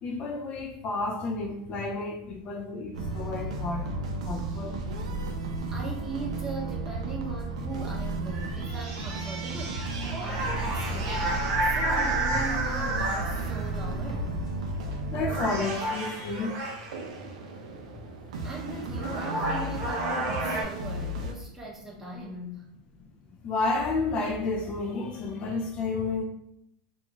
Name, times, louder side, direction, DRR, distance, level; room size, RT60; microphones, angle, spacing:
voice 1, 0.0-3.9 4.2-4.8 15.0-16.6 23.4-26.2, left 3 dB, 35° left, 2 dB, 0.3 m, -31 dB
sound 1, 2.9-21.3, right 2 dB, 85° right, 0.4 m, -34 dB
voice 2, 5.7-14.3 18.4-22.7, right 2 dB, 10° right, -2 dB, 0.6 m, -39 dB
sound 2, 8.2-13.8 14.7-14.9 15.2-17.1 18.5-18.6 18.9-20.6, right 2 dB, 50° right, 0.8 m, -31 dB
2.3 x 2.3 x 2.9 m, 0.79 s
supercardioid pair, 130°, 3 cm